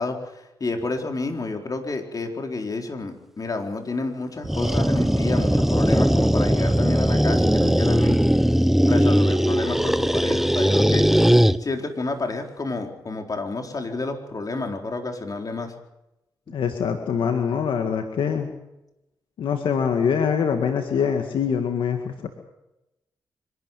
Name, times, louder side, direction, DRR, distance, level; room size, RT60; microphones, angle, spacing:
voice 1, 0.0-8.2 8.8-11.1 11.6-15.7, left 3 dB, 45° left, 3 dB, 4.4 m, -30 dB
sound 1, 4.4-11.6, equal, 5° right, 0.9 m, -19 dB
voice 2, 16.5-18.5 19.4-22.3, left 7 dB, 80° left, 5 dB, 1.9 m, -24 dB
25.0 x 12.5 x 9.3 m, 0.92 s
cardioid pair, 55°, 8 cm